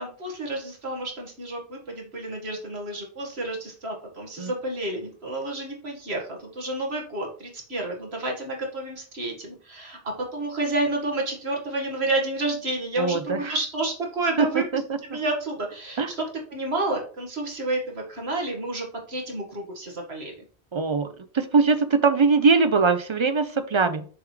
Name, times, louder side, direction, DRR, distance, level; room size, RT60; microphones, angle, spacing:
voice 1, 0.0-14.6 15.0-16.2 16.5-20.4, right 2 dB, 75° right, 0 dB, 2.0 m, -30 dB
voice 2, 13.0-13.6 14.4-15.0 16.0-16.1 20.7-21.1 21.3-24.0, right 4 dB, 55° right, 10 dB, 0.3 m, -21 dB
7.0 x 4.9 x 3.2 m, 0.43 s
omnidirectional pair, 1.1 m